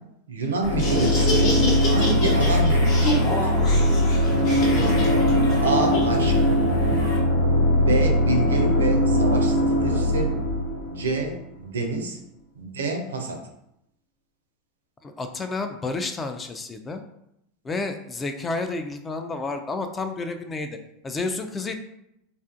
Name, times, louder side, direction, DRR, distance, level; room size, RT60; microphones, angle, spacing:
voice 1, 0.3-3.5 5.6-6.4 7.7-10.3 10.8-12.2 12.6-13.4, right 3 dB, 80° right, 4 dB, 0.4 m, -28 dB
sound 1, 0.6-11.4, left 1 dB, 80° left, 0.5 m, -20 dB
Laughter, 0.6-7.2, left 1 dB, 55° left, 0.9 m, -30 dB
voice 2, 15.0-17.0 17.6-20.8 21.0-21.8, left 3 dB, 20° left, 7 dB, 0.3 m, -30 dB
2.5 x 2.4 x 2.4 m, 0.80 s
hypercardioid pair, 90°, 0 cm